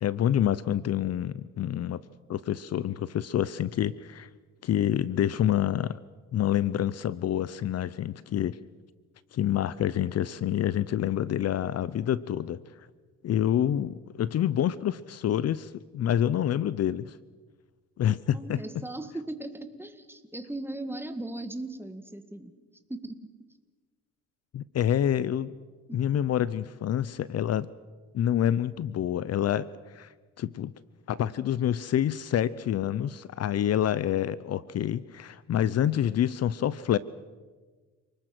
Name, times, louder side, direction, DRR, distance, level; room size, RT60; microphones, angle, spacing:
voice 1, 0.0-2.0 2.3-4.3 4.6-6.0 6.3-8.6 9.3-12.6 13.2-17.2 18.0-18.6 24.5-25.5 25.9-27.7 28.1-30.1 30.4-30.7 31.1-37.0, left 10 dB, 55° left, 18 dB, 0.7 m, -27 dB
voice 2, 18.3-22.5 22.9-23.3 25.9-26.0, right 2 dB, 5° right, 8 dB, 2.0 m, -38 dB
29.0 x 20.0 x 6.1 m, 1.4 s
cardioid pair, 90°, 30 cm